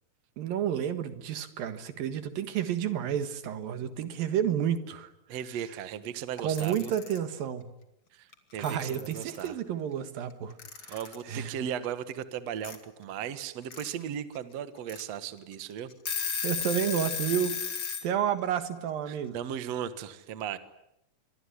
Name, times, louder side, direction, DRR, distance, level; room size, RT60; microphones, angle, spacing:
voice 1, 0.4-5.1 6.4-7.7 8.6-10.5 10.9-11.0 11.3-11.5 16.4-19.4, right 9 dB, 75° right, 10 dB, 3.2 m, -30 dB
voice 2, 5.3-6.9 8.1-9.6 10.9-15.9 19.1-20.6, right 9 dB, 55° right, 11 dB, 2.2 m, -37 dB
Alarm / Clock, 6.4-7.2 8.3-8.4 8.6-9.5 10.6-11.2 12.6-12.8 13.5-13.9 14.4-14.5 14.9-15.0 15.5-15.6 15.9-18.1, left 7 dB, 35° left, 2.7 m, -34 dB
25.5 x 23.5 x 9.8 m, 0.81 s
omnidirectional pair, 4.3 m